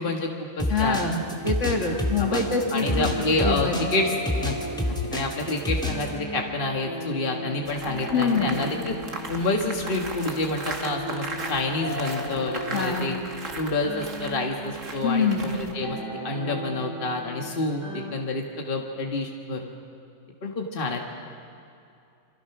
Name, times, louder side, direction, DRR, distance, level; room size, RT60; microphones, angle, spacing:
voice 1, 0.0-1.1 2.2-2.4 2.7-4.5 5.1-9.0 9.3-13.2 13.6-16.0 16.2-19.7 20.4-21.1, left 2 dB, 40° left, 1 dB, 1.8 m, -28 dB
sound 1, 0.6-6.1, left 1 dB, 5° left, 2.3 m, -28 dB
voice 2, 0.7-3.1 3.4-3.8 8.1-8.6 12.7-13.1 15.0-15.5, left 4 dB, 60° left, 2 dB, 2.4 m, -25 dB
sound 2, 1.1-18.1, equal, 85° right, 3.2 m, -37 dB
sound 3, 7.6-15.7, right 3 dB, 70° right, 2.3 m, -37 dB
28.5 x 25.0 x 6.0 m, 2.6 s
omnidirectional pair, 1.4 m